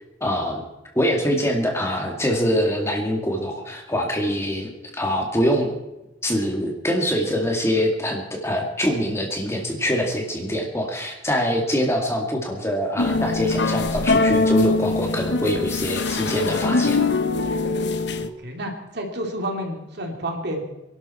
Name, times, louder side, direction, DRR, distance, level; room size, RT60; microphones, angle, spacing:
voice 1, 0.2-0.6 0.9-5.7 6.2-17.0, equal, 15° left, 1 dB, 2.1 m, -24 dB
sound 1, 13.0-18.3, left 3 dB, 60° left, 0.9 m, -22 dB
voice 2, 18.2-20.6, right 1 dB, 55° right, 2 dB, 2.8 m, -30 dB
23.5 x 12.0 x 4.3 m, 0.99 s
head